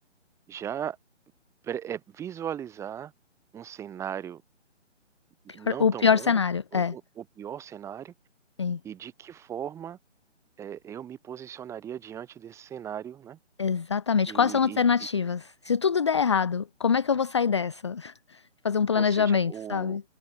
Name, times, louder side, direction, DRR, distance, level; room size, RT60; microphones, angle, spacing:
voice 1, 0.5-1.0 1.6-3.1 3.5-4.4 5.5-6.4 6.7-8.1 8.8-10.0 10.6-13.4 14.3-14.8 18.9-20.0, right 9 dB, 10° right, 2.8 m, -38 dB
voice 2, 5.6-6.9 8.6-8.8 13.6-18.4 18.6-20.0, left 6 dB, 25° left, 0.6 m, -24 dB
figure-of-eight pair, 145°, 36 cm